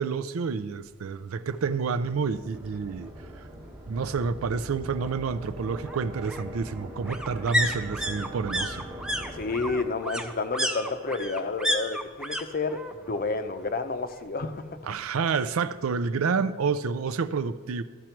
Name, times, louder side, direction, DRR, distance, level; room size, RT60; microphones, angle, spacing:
voice 1, 0.0-3.1 3.9-8.8 14.9-17.8, right 5 dB, 80° right, 0.4 m, -29 dB
sound 1, 1.5-1.6 2.0-2.1 2.4-3.4 4.6-12.4 12.7-13.3 13.5-14.6 14.9-15.0, equal, 5° right, 0.4 m, -32 dB
sound 2, 2.0-10.5, equal, 30° right, 1.1 m, -42 dB
voice 2, 9.3-12.8 13.1-14.6, left 3 dB, 45° left, 0.6 m, -30 dB
13.5 x 6.1 x 4.5 m
head